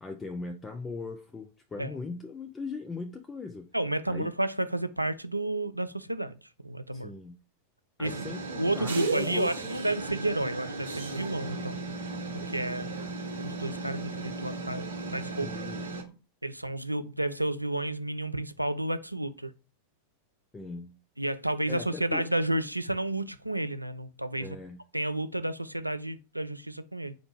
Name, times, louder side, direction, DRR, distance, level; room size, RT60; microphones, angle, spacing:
voice 1, 0.0-3.7 4.1-4.3 6.9-7.4 8.0-9.7 15.4-15.9 20.5-21.0 21.7-22.2 24.4-24.8, left 3 dB, 15° left, 0.5 m, -39 dB
voice 2, 3.7-6.4 6.6-7.1 8.0-8.1 8.6-11.8 12.3-12.9 13.4-14.9 15.1-15.5 16.4-19.5 21.2-24.6 24.9-27.2, right 1 dB, 85° right, 0.3 m, -31 dB
sound 1, 8.0-16.0, right 3 dB, 65° right, 0.8 m, -35 dB
4.4 x 2.6 x 4.3 m
figure-of-eight pair, 90°, 0 cm